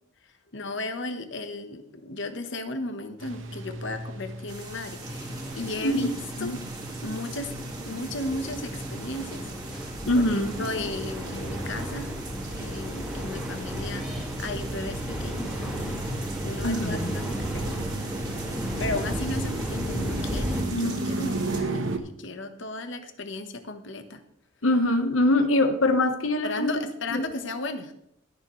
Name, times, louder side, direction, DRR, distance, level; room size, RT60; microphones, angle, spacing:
voice 1, 0.5-6.0 6.4-6.5 7.0-9.8 10.1-10.2 10.6-12.1 12.6-16.0 16.4-17.3 17.5-17.8 18.8-24.2 26.4-27.9, left 2 dB, 65° left, 8 dB, 1.1 m, -35 dB
sound 1, 3.2-22.0, right 2 dB, 75° right, 1.1 m, -36 dB
sound 2, 4.5-21.6, right 3 dB, 20° right, 1.9 m, -43 dB
sound 3, 5.0-20.6, equal, ahead, 2.1 m, -34 dB
voice 2, 10.0-10.7 16.6-17.2 20.7-21.1 24.6-26.7 27.1-27.2, left 1 dB, 90° left, 8 dB, 1.2 m, -24 dB
20.5 x 7.1 x 3.1 m, 0.77 s
head